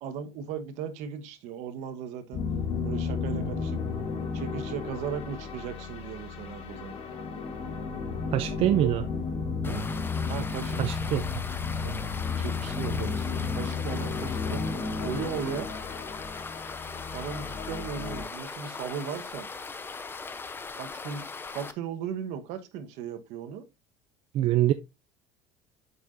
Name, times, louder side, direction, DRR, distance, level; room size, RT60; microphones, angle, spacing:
voice 1, 0.0-2.4 2.8-3.8 4.3-7.0 8.5-8.9 9.6-9.8 10.2-10.8 11.8-12.1 12.4-15.7 17.1-19.5 20.8-21.3 21.5-23.6, right 7 dB, 70° right, 1.2 m, -37 dB
sound 1, 2.3-18.3, left 5 dB, 50° left, 1.6 m, -33 dB
voice 2, 8.3-9.0 10.8-11.2 24.3-24.7, right 13 dB, 50° right, 0.5 m, -24 dB
sound 2, 9.6-21.7, left 4 dB, 20° left, 0.7 m, -39 dB
8.0 x 5.8 x 2.6 m
supercardioid pair, 120°, 12 cm